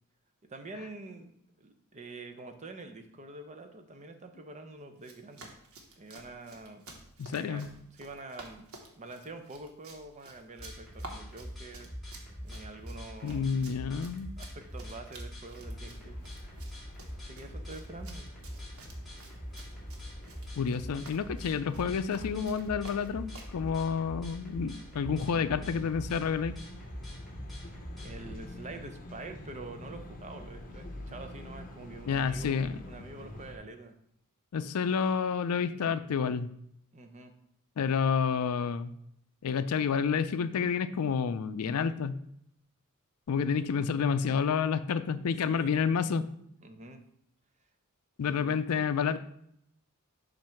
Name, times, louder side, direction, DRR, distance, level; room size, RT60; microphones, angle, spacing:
voice 1, 0.5-1.3 1.6-5.5 6.0-6.8 7.3-8.7 9.0-11.9 12.4-13.5 14.4-16.2 17.2-18.3 27.6-27.7 28.0-34.0 36.9-37.3 45.2-45.7 46.6-47.0 48.3-48.7, right 2 dB, 30° right, 7 dB, 0.6 m, -46 dB
Run, 5.0-23.6, right 2 dB, 65° right, 1.2 m, -52 dB
voice 2, 7.2-7.7 13.2-14.3 20.6-26.5 32.1-32.8 34.5-36.5 37.8-38.9 39.4-42.2 43.3-46.3 48.2-49.2, left 6 dB, 80° left, 12 dB, 0.4 m, -29 dB
sound 1, 10.6-28.4, equal, ahead, 2.3 m, -44 dB
sound 2, 15.6-33.6, left 1 dB, 40° left, 0.8 m, -48 dB
7.5 x 2.6 x 5.7 m, 0.72 s
head